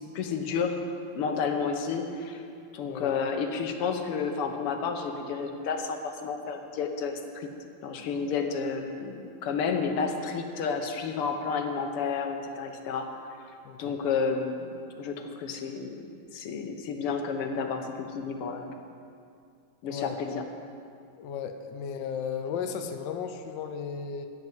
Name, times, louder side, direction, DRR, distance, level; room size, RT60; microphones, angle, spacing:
voice 1, 0.2-0.7 1.2-2.4 2.7-7.5 7.8-13.1 13.8-16.0 16.3-18.7 19.8-20.4, left 5 dB, 90° left, 5 dB, 2.0 m, -31 dB
voice 2, 2.8-3.1 13.6-13.9 19.9-20.2 21.2-24.3, left 7 dB, 65° left, 7 dB, 1.3 m, -35 dB
13.5 x 6.0 x 9.3 m, 2.4 s
omnidirectional pair, 2.4 m